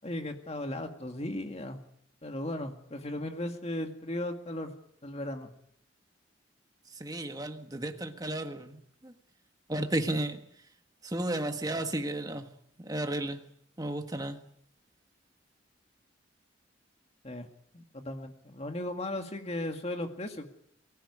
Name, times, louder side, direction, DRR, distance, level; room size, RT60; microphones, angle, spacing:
voice 1, 0.0-1.8 2.2-4.7 5.0-5.5 17.2-17.5 17.7-20.5, left 1 dB, 30° left, 5 dB, 2.0 m, -36 dB
voice 2, 7.0-9.1 9.7-10.4 11.0-12.5 12.8-13.4 13.8-14.4, right 1 dB, 20° right, 6 dB, 1.4 m, -33 dB
24.0 x 16.0 x 9.9 m, 0.71 s
head